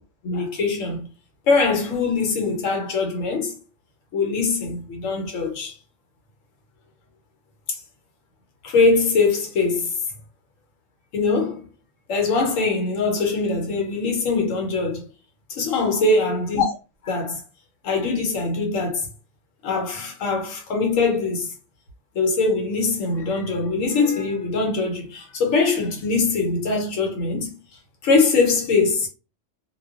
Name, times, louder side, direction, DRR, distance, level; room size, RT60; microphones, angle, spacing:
voice 1, 0.2-1.1 1.5-3.6 4.1-5.7 8.6-9.9 11.1-11.7 12.1-15.1 15.6-16.7 17.0-17.4 17.8-19.1 19.6-21.5 22.1-27.6 28.0-29.1, left 3 dB, 85° left, 1.1 m, -22 dB
2.4 x 2.2 x 2.3 m
omnidirectional pair, 1.3 m